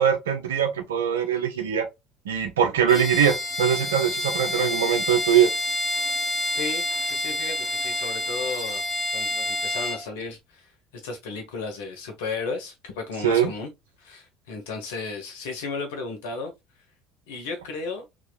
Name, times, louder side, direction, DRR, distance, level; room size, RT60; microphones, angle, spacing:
voice 1, 0.0-1.9 2.2-5.5 13.2-13.5, right 8 dB, 85° right, 0.8 m, -22 dB
Bowed string instrument, 2.9-10.0, left 1 dB, 25° left, 1.5 m, -28 dB
voice 2, 6.5-8.8 9.1-10.7 11.0-13.7 14.0-16.5 17.3-18.0, left 4 dB, 80° left, 1.2 m, -34 dB
3.7 x 3.0 x 2.3 m
hypercardioid pair, 65°, 0 cm